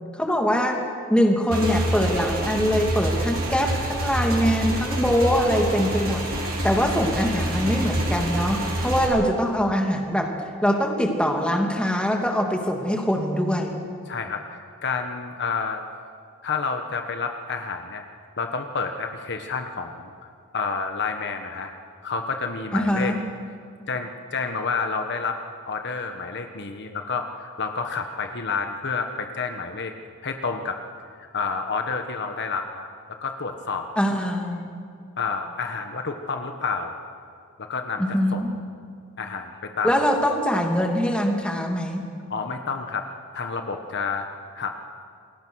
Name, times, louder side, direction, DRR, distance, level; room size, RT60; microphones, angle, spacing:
voice 1, 0.2-0.8 1.1-6.2 6.6-10.3 10.6-13.8 22.7-23.2 34.0-34.7 38.0-38.5 39.8-42.0, equal, 5° left, 1 dB, 2.7 m, -23 dB
Motorcycle / Engine, 1.5-9.1, right 1 dB, 45° right, 6.1 m, -27 dB
voice 2, 14.1-15.8 16.4-18.0 18.4-20.1 20.5-21.7 22.0-23.1 23.9-25.4 25.7-29.9 30.2-30.8 31.3-33.9 35.2-36.9 37.6-38.4 39.2-40.0 42.3-43.0 43.3-44.3 44.5-44.8, left 5 dB, 50° left, 5 dB, 1.4 m, -29 dB
29.0 x 21.5 x 6.4 m, 2.3 s
head